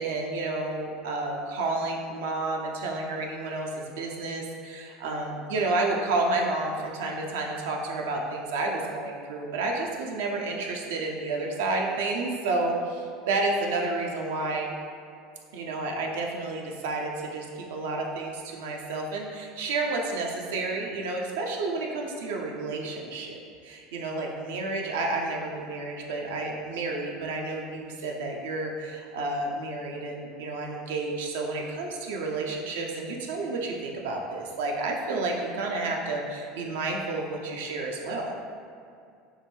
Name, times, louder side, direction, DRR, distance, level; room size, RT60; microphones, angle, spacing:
voice 1, 0.0-14.7 15.5-38.3, right 2 dB, 70° right, 0 dB, 0.4 m, -30 dB
3.4 x 2.1 x 3.0 m, 2.4 s
hypercardioid pair, 75°, 0 cm